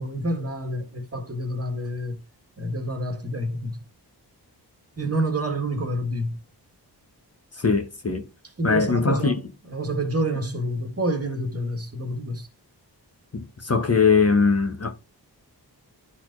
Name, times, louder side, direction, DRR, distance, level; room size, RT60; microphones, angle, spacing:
voice 1, 0.0-2.2 2.6-3.8 5.0-6.4 8.6-9.4 9.7-12.5, right 1 dB, 35° right, 1.6 m, -28 dB
voice 2, 7.6-8.3 8.6-9.3 13.3-14.9, left 4 dB, 35° left, 1.0 m, -21 dB
11.5 x 4.2 x 2.5 m
cardioid pair, 60°, 42 cm